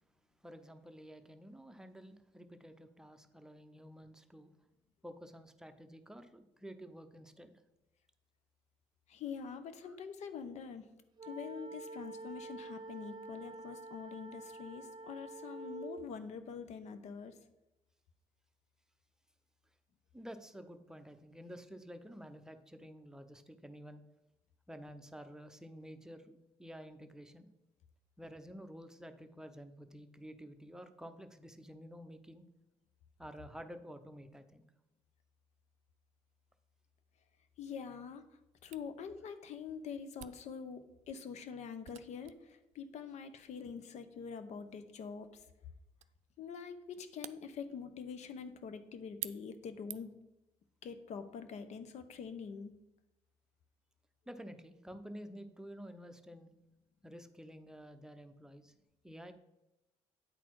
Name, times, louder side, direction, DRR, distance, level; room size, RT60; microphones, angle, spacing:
voice 1, 0.4-4.5 5.0-7.5 9.8-10.0 20.1-24.0 24.7-27.5 28.2-32.4 33.2-34.6 54.3-56.5 57.0-58.7 59.0-59.3, equal, 5° right, 7 dB, 0.7 m, -51 dB
voice 2, 9.1-10.8 11.2-17.3 37.6-38.2 38.6-45.3 46.4-50.1 50.8-52.7, left 6 dB, 70° left, 10 dB, 0.8 m, -45 dB
sound 1, 11.2-16.1, right 3 dB, 40° right, 0.8 m, -47 dB
Camera, 38.7-50.3, right 13 dB, 65° right, 0.4 m, -53 dB
9.1 x 4.1 x 4.7 m, 0.97 s
cardioid pair, 80°, 12 cm